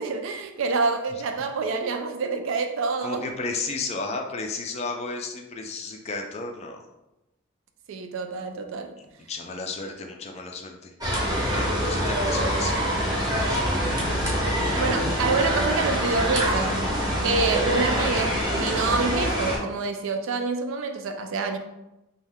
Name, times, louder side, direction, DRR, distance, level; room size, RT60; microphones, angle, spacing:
voice 1, 0.0-3.3 7.9-8.9 14.8-16.8 17.2-21.6, right 4 dB, 70° right, 6 dB, 0.3 m, -27 dB
voice 2, 3.0-6.8 9.0-10.9 11.5-14.5, left 3 dB, 30° left, 3 dB, 0.3 m, -33 dB
sound 1, 11.0-19.6, equal, 20° right, 0.6 m, -25 dB
2.6 x 2.2 x 3.4 m, 0.96 s
head